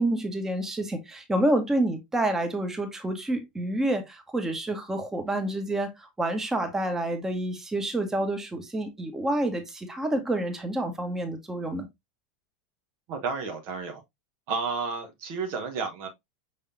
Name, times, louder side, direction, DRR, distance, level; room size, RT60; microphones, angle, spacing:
voice 1, 0.0-11.9, right 1 dB, 10° right, 1.2 m, -28 dB
voice 2, 13.1-14.0 14.5-16.1, right 4 dB, 50° right, 1.0 m, -31 dB
5.7 x 3.4 x 2.6 m
figure-of-eight pair, 90°, 4 cm